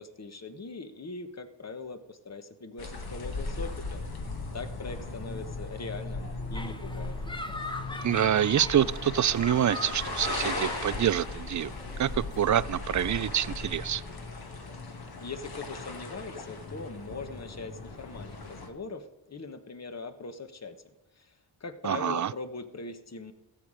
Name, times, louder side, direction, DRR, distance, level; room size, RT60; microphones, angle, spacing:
voice 1, 0.0-4.1 4.5-7.2 14.8-20.8 21.2-21.3 21.6-23.3, left 3 dB, 35° left, 9 dB, 1.2 m, -41 dB
sound 1, 2.8-18.7, left 3 dB, 55° left, 2.1 m, -37 dB
sound 2, 6.5-12.6, left 1 dB, 10° left, 1.0 m, -40 dB
voice 2, 8.0-11.7 12.0-14.0 21.8-22.3, right 10 dB, 40° right, 18 dB, 0.4 m, -26 dB
15.5 x 7.4 x 5.0 m, 1.1 s
cardioid pair, 70°, 45 cm